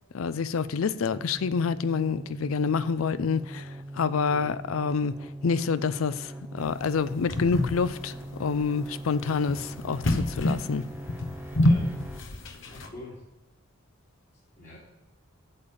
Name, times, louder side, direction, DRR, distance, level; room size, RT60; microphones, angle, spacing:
voice 1, 0.1-5.2 5.4-8.1 8.4-10.8, left 5 dB, 85° left, 0.5 m, -27 dB
sound 1, 1.1-12.2, right 1 dB, 10° right, 0.6 m, -41 dB
sound 2, 6.6-12.9, left 1 dB, 65° left, 0.9 m, -28 dB
voice 2, 12.7-13.2 14.6-14.8, left 1 dB, 40° left, 2.6 m, -44 dB
8.5 x 6.9 x 5.3 m
head